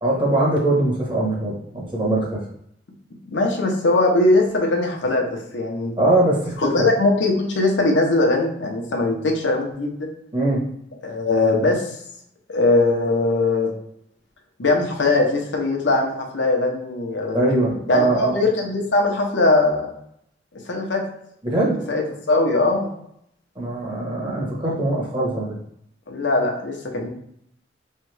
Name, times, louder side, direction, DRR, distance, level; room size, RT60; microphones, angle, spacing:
voice 1, 0.0-2.4 6.0-6.9 10.3-10.7 17.3-18.3 21.4-21.8 23.5-25.6, right 2 dB, 25° right, -3 dB, 1.1 m, -21 dB
voice 2, 3.3-5.9 6.6-10.1 11.0-11.9 12.5-13.7 14.6-17.5 17.9-19.9 20.7-21.0 21.9-22.0 22.3-22.9 26.1-27.1, left 2 dB, 80° left, 1 dB, 0.8 m, -20 dB
3.5 x 3.3 x 3.3 m, 0.73 s
head